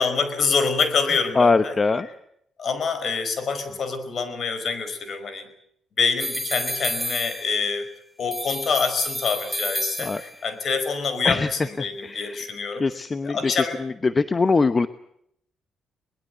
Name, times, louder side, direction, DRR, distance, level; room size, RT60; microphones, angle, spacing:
voice 1, 0.0-1.7 2.6-5.4 6.0-7.9 8.2-11.5 11.8-12.8 13.2-13.7, left 5 dB, 55° left, 11 dB, 5.1 m, -25 dB
voice 2, 1.3-2.1 10.0-10.2 11.2-11.5 11.8-12.5 12.7-13.5 13.8-14.9, left 4 dB, 30° left, 12 dB, 0.9 m, -22 dB
sound 1, 6.2-7.8 8.3-10.5, equal, ahead, 1.1 m, -30 dB
23.0 x 20.5 x 8.0 m, 0.72 s
cardioid pair, 90°, 0 cm